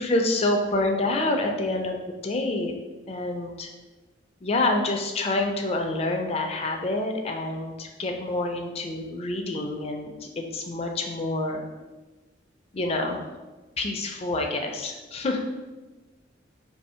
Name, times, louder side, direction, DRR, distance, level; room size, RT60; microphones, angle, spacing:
voice 1, 0.0-2.0 2.2-2.7 3.1-3.7 4.4-11.7 12.7-13.2 13.8-15.4, left 2 dB, 30° left, 2 dB, 0.4 m, -27 dB
2.9 x 2.7 x 4.2 m, 1.2 s
head